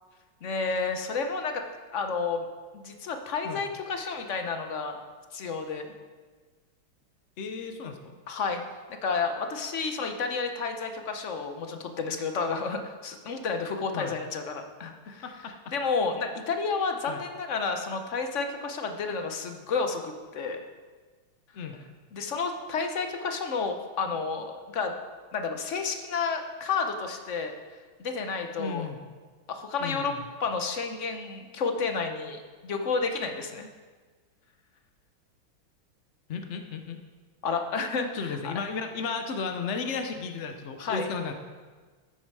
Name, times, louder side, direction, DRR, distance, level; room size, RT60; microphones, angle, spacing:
voice 1, 0.4-1.6 1.9-2.4 2.7-5.0 5.3-5.9 8.3-8.6 9.0-15.2 15.7-20.6 22.1-24.9 25.3-27.5 28.0-28.9 29.5-30.1 30.4-33.7 37.4-38.5 40.8-41.1, left 4 dB, 55° left, 6 dB, 0.9 m, -31 dB
voice 2, 7.4-8.2 13.9-14.2 15.1-15.7 17.1-17.2 21.5-21.9 28.6-29.0 29.8-30.2 36.3-37.0 38.1-41.3, left 5 dB, 75° left, 6 dB, 0.6 m, -34 dB
13.5 x 8.8 x 4.7 m, 1.4 s
omnidirectional pair, 2.3 m